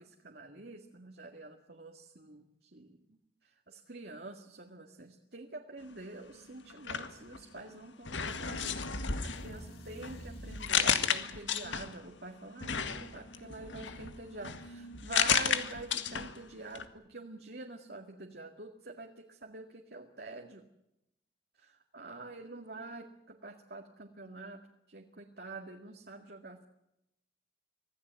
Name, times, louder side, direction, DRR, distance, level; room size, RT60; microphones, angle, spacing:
voice 1, 0.0-2.5 2.7-20.6 21.6-24.6 24.9-26.6, right 2 dB, 55° right, 2 dB, 2.1 m, -47 dB
sound 1, 6.7-7.7 8.0-12.1 12.6-16.5 16.7-16.9, left 7 dB, 80° left, 1.9 m, -33 dB
sound 2, 8.7-10.9, equal, 30° left, 5.3 m, -47 dB
25.5 x 16.5 x 9.5 m, 0.86 s
head